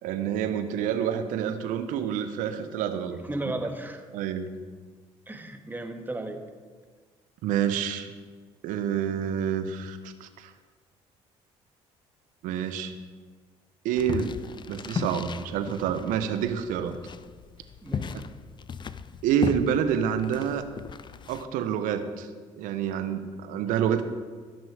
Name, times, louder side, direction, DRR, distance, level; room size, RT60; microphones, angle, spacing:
voice 1, 0.0-3.5 4.1-4.5 7.4-8.1 8.6-10.5 12.4-13.0 13.8-14.3 14.7-16.9 19.2-20.6 21.3-22.3 22.6-24.0, right 8 dB, 75° right, 9 dB, 0.9 m, -28 dB
voice 2, 3.1-4.0 5.3-6.4 17.8-18.1, right 1 dB, 15° right, 5 dB, 1.5 m, -34 dB
sound 1, 14.0-21.4, left 6 dB, 35° left, 0.5 m, -36 dB
15.5 x 6.2 x 4.8 m, 1.5 s
hypercardioid pair, 60°, 14 cm